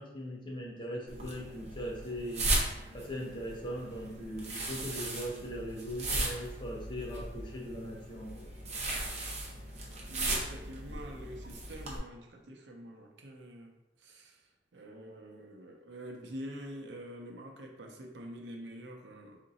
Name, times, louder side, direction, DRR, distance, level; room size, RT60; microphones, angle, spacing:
voice 1, 0.0-2.5 2.9-8.5, equal, 25° left, -2 dB, 0.8 m, -40 dB
sound 1, 1.1-12.0, right 2 dB, 40° right, 0.8 m, -37 dB
voice 2, 10.1-13.7 14.0-14.5 14.7-19.4, equal, 80° right, 2 dB, 0.7 m, -46 dB
3.7 x 2.6 x 4.0 m, 0.96 s
head